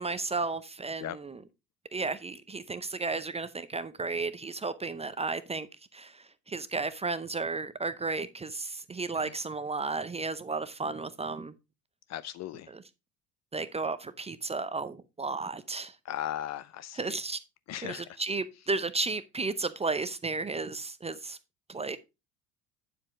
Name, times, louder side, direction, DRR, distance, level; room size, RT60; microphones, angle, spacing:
voice 1, 0.0-1.4 1.9-5.7 5.9-11.5 12.7-12.8 13.5-15.9 16.9-17.4 17.8-21.4 21.7-22.0, right 3 dB, 15° right, 0.5 m, -33 dB
voice 2, 12.1-12.7 16.1-17.2 17.7-18.1, left 12 dB, 35° left, 0.5 m, -37 dB
9.1 x 7.4 x 3.0 m
hypercardioid pair, 70°, 48 cm